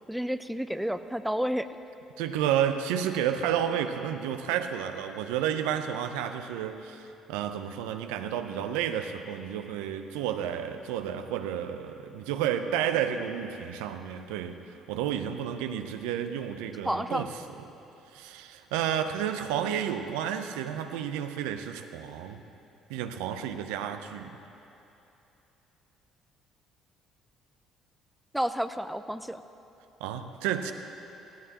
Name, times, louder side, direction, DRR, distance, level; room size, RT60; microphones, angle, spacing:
voice 1, 0.1-1.7 16.8-17.3 28.3-29.4, equal, 5° right, 10 dB, 0.6 m, -30 dB
voice 2, 2.2-14.6 14.9-17.3 18.1-22.4 22.9-24.4 30.0-30.7, right 9 dB, 80° right, 7 dB, 0.6 m, -31 dB
17.5 x 16.5 x 2.9 m, 2.9 s
hypercardioid pair, 55°, 0 cm